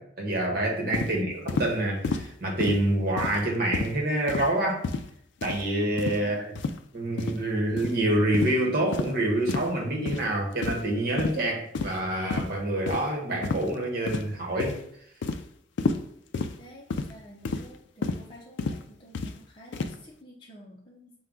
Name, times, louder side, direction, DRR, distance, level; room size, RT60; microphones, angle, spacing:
voice 1, 0.0-4.8 5.4-6.5 6.9-14.8, right 1 dB, 55° right, -1 dB, 1.1 m, -27 dB
sound 1, 0.9-1.1 1.5-1.7 2.0-2.3 2.6-2.8 3.2-3.4 3.7-3.9 4.3-4.5 4.8-5.1 5.4-5.6 6.0-6.2 6.5-6.8 7.2-7.4 7.8-7.9 8.3-8.5 8.9-9.1 9.5-9.7 10.0-10.2 10.6-10.9 11.2-11.4 11.7-12.0 12.3-12.5 12.9-13.0 13.4-13.7 14.1-14.3 14.6-14.8 15.2-15.4 15.8-16.0 16.3-16.5 16.9-17.1 17.4-17.7 18.0-18.2 18.6-18.8 19.1-19.3 19.7-19.9, left 4 dB, 70° left, 0.4 m, -30 dB
voice 2, 6.2-6.5 16.6-21.1, equal, 25° left, -5 dB, 0.6 m, -50 dB
5.5 x 2.2 x 3.7 m, 0.69 s
head